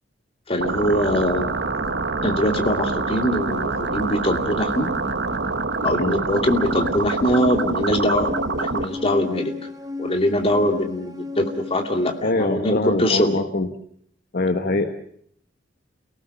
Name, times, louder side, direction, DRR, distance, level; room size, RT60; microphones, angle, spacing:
voice 1, 0.5-1.5 2.2-4.9 5.8-9.5 10.0-13.4, equal, 30° left, 4 dB, 2.7 m, -22 dB
sound 1, 0.6-8.9, right 3 dB, 65° right, 1.5 m, -26 dB
sound 2, 6.3-12.2, left 4 dB, 20° right, 1.3 m, -34 dB
voice 2, 12.2-13.7 14.3-14.9, left 2 dB, 55° left, 7 dB, 1.4 m, -23 dB
29.5 x 18.0 x 7.1 m, 0.65 s
head